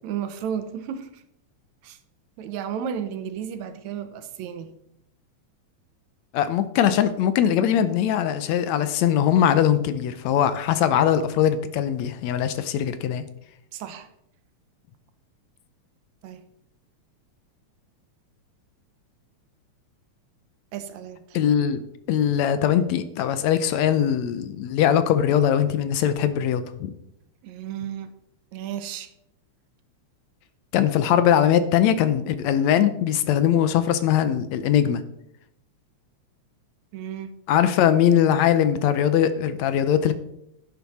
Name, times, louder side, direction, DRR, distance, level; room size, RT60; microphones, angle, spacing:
voice 1, 0.0-1.2 1.8-2.0 2.4-4.7 13.7-14.1 16.2-16.4 20.7-21.4 27.4-28.1 28.5-29.1 36.9-37.3, right 8 dB, 75° right, 2.1 m, -33 dB
voice 2, 6.3-13.2 21.3-21.8 22.1-26.9 30.7-35.0 37.5-40.1, left 9 dB, 75° left, 1.9 m, -21 dB
10.5 x 10.5 x 4.2 m
omnidirectional pair, 3.4 m